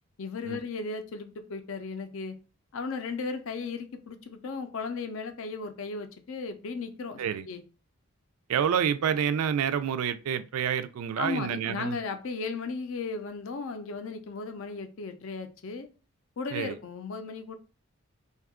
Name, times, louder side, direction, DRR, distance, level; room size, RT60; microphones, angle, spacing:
voice 1, 0.2-2.4 2.7-7.2 7.5-7.6 11.2-15.9 16.4-17.6, left 4 dB, 60° left, 0.4 m, -36 dB
voice 2, 8.5-12.0 16.5-16.8, right 8 dB, 75° right, 0.3 m, -28 dB
2.7 x 2.3 x 3.5 m
head